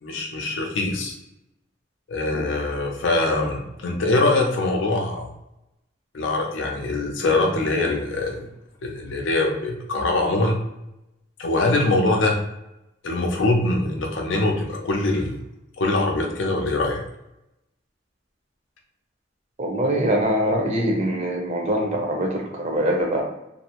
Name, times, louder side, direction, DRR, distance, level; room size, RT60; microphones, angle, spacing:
voice 1, 0.0-1.1 2.1-5.3 6.1-8.4 8.8-10.6 11.4-12.4 13.0-15.4 15.8-17.0, left 2 dB, 80° left, 1 dB, 0.5 m, -23 dB
voice 2, 19.6-23.2, right 1 dB, 35° right, 0 dB, 0.6 m, -23 dB
2.6 x 2.0 x 2.8 m, 0.89 s
head